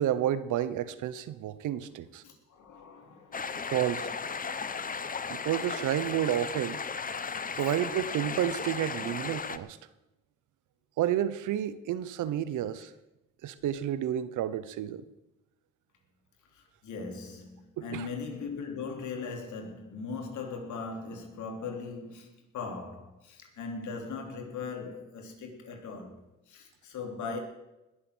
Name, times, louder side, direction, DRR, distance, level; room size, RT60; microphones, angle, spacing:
voice 1, 0.0-2.2 3.7-4.1 5.3-6.8 7.6-9.8 11.0-12.9 13.4-15.1 17.8-18.1, right 11 dB, 80° right, 1.0 m, -30 dB
voice 2, 2.2-3.7 7.5-7.8 16.5-26.2 26.5-27.4, left 4 dB, 75° left, 3.3 m, -39 dB
sound 1, 3.3-9.6, left 5 dB, 30° left, 0.9 m, -35 dB
20.5 x 7.6 x 6.3 m
cardioid pair, 90°, 30 cm